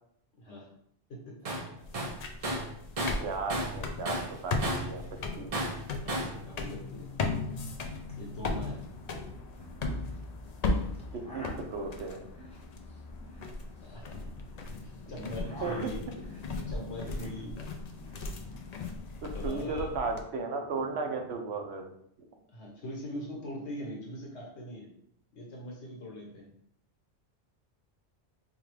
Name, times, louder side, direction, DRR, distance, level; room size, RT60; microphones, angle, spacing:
voice 1, 0.4-0.7 1.1-1.3 6.0-7.1 8.2-8.8 13.8-14.1 15.1-16.0 16.7-17.6 19.2-19.9 22.5-24.9 25.3-26.5, equal, 75° left, -2 dB, 1.3 m, -41 dB
Tools, 1.5-1.7 1.9-5.0 5.5-6.4, right 1 dB, 40° right, 0.6 m, -33 dB
sound 1, 1.8-20.2, left 3 dB, 60° left, 0.4 m, -37 dB
voice 2, 3.2-4.2 4.4-5.0 5.4-5.6 11.3-12.2 15.1-15.2 15.6-15.9 19.4-21.8, right 4 dB, 70° right, 3 dB, 0.9 m, -35 dB
sound 2, 8.1-8.2 8.4-8.8 9.1-10.3 10.9-14.9 15.2-17.5 17.7-18.7, equal, 5° left, 0.8 m, -48 dB
4.5 x 2.3 x 3.2 m, 0.68 s
omnidirectional pair, 1.1 m